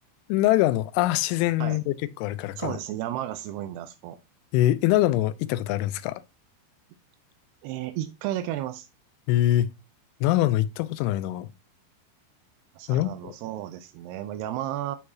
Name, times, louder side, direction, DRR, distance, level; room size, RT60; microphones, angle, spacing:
voice 1, 0.3-2.8 4.5-6.2 9.3-9.7 10.2-11.5 12.9-13.3, left 14 dB, 85° left, 3.0 m, -24 dB
voice 2, 2.6-4.2 7.6-8.9 12.8-15.0, right 13 dB, 85° right, 2.3 m, -33 dB
11.0 x 4.7 x 2.7 m
omnidirectional pair, 5.3 m